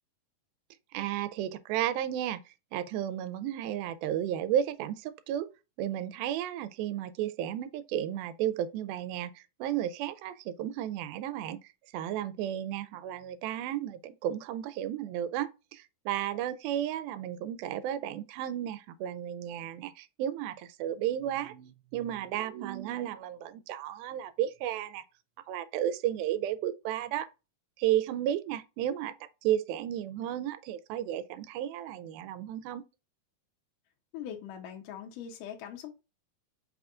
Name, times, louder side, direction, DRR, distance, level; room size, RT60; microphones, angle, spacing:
voice 1, 0.9-2.4 2.7-5.5 5.8-11.6 11.9-25.0 25.5-27.3 27.8-29.1 29.4-32.8, right 11 dB, 85° right, 2.4 m, -33 dB
voice 2, 34.1-35.9, left 9 dB, 75° left, 2.0 m, -41 dB
5.5 x 2.4 x 3.6 m
omnidirectional pair, 4.2 m